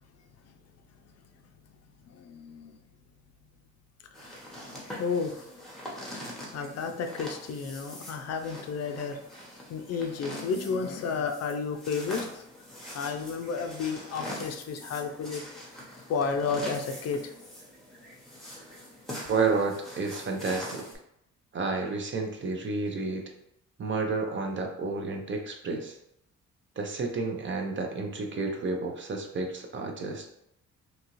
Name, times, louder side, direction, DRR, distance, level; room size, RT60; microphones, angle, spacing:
voice 1, 2.1-2.8 4.2-4.3 5.0-5.4 6.2-9.2 9.7-12.4 12.9-15.4 16.1-17.3, left 5 dB, 55° left, 6 dB, 0.4 m, -32 dB
sound 1, 4.1-21.0, equal, ahead, 0.9 m, -43 dB
voice 2, 19.3-20.9 21.5-23.2 23.8-26.0 26.8-30.3, right 4 dB, 40° right, 3 dB, 0.6 m, -30 dB
2.8 x 2.4 x 2.9 m, 0.76 s
cardioid pair, 90°, 30 cm